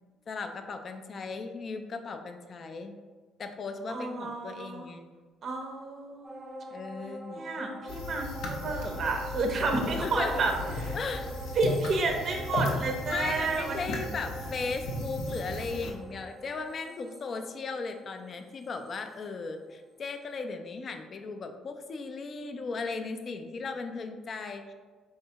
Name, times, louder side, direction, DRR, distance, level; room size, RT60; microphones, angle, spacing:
voice 1, 0.3-3.0 3.4-5.1 6.7-7.4 10.0-10.5 10.9-11.3 13.1-24.7, left 4 dB, 40° left, 7 dB, 0.3 m, -37 dB
voice 2, 3.9-4.9 5.4-6.4 7.3-10.5 11.6-13.8, right 3 dB, 45° right, 3 dB, 0.5 m, -30 dB
sound 1, 6.2-19.9 20.3-20.4, equal, ahead, 0.7 m, -44 dB
sound 2, 7.9-15.9, left 2 dB, 85° left, 0.6 m, -36 dB
4.5 x 3.2 x 2.8 m, 1.4 s
cardioid pair, 140°, 0 cm